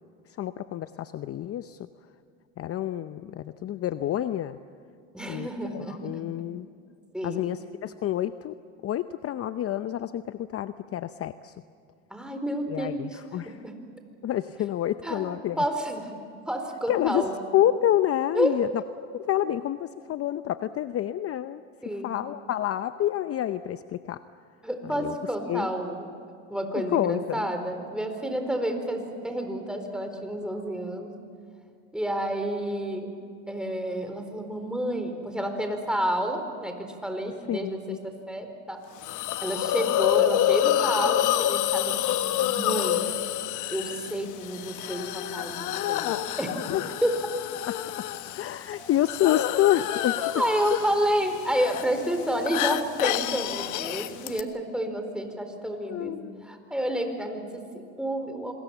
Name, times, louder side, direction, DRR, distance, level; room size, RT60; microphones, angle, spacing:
voice 1, 0.4-1.8 2.6-4.6 5.3-6.7 7.2-8.5 8.8-11.5 12.7-13.6 14.2-15.6 16.9-17.2 17.5-18.7 19.1-21.6 22.0-24.2 25.0-25.1 25.5-25.7 26.9-27.5 37.5-38.0 46.7-47.0 47.7-47.8 48.3-50.2 55.8-56.4, left 12 dB, 40° left, 12 dB, 0.8 m, -28 dB
voice 2, 5.1-6.2 7.1-7.6 12.1-13.7 15.0-16.2 16.5-17.3 18.3-18.6 21.8-22.2 24.6-26.1 26.5-31.1 31.9-33.1 33.5-38.8 39.4-42.0 42.3-43.1 43.7-46.1 46.4-46.6 47.0-47.1 48.7-48.9 50.4-56.2 56.4-58.5, right 1 dB, ahead, 5 dB, 4.4 m, -30 dB
Hiss, 39.0-54.4, left 12 dB, 60° left, 1.3 m, -28 dB
27.0 x 21.5 x 7.3 m, 2.4 s
supercardioid pair, 90°, 35 cm